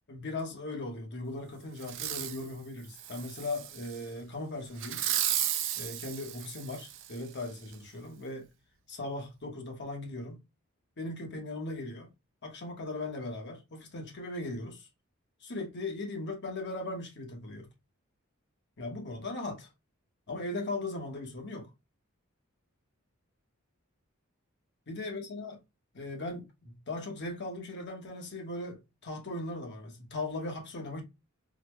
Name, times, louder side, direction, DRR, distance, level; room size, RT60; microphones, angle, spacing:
voice 1, 0.1-5.0 5.8-8.5 8.9-10.4 11.0-12.1 12.4-14.9 15.4-17.7 18.8-19.7 20.3-21.7 24.9-25.6 25.9-31.0, left 2 dB, 55° left, 1.0 m, -38 dB
Fireworks, 1.8-2.4 2.9-4.0 4.8-7.2 7.7-7.8, right 11 dB, 65° right, 0.5 m, -34 dB
4.0 x 2.1 x 2.9 m
head